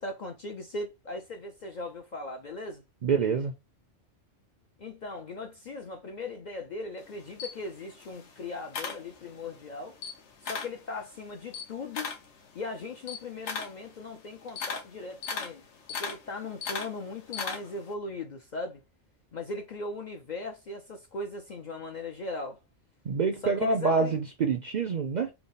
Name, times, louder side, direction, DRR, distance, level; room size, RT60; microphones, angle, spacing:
voice 1, 0.0-2.8 4.8-10.0 10.4-12.1 12.5-15.6 16.0-18.8 19.3-22.6 23.4-24.2, left 2 dB, 55° left, 0.5 m, -38 dB
voice 2, 3.0-3.5 23.0-25.3, right 4 dB, 55° right, 0.5 m, -26 dB
Camera, 7.0-9.6 9.9-10.8 11.2-17.9, left 5 dB, 70° left, 1.1 m, -38 dB
3.5 x 2.0 x 3.9 m
omnidirectional pair, 1.2 m